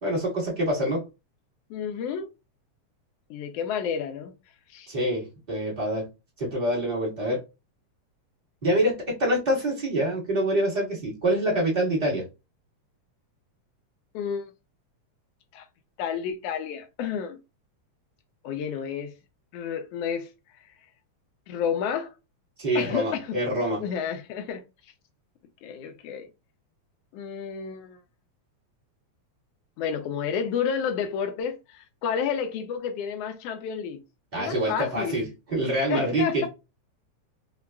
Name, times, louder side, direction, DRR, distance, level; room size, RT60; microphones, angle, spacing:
voice 1, 0.0-1.1 4.9-6.1 6.4-7.4 8.6-12.3 22.6-23.8 34.3-36.5, right 1 dB, 30° right, 0.8 m, -26 dB
voice 2, 1.7-2.3 3.3-4.3 4.7-4.9 14.1-14.4 15.5-15.6 16.0-17.4 18.4-19.1 19.5-20.3 21.5-22.1 22.7-23.4 23.8-24.6 25.6-26.3 27.1-28.0 29.8-34.0 34.4-35.2 35.9-36.5, left 7 dB, 80° left, 1.4 m, -30 dB
4.7 x 2.3 x 2.2 m
omnidirectional pair, 3.3 m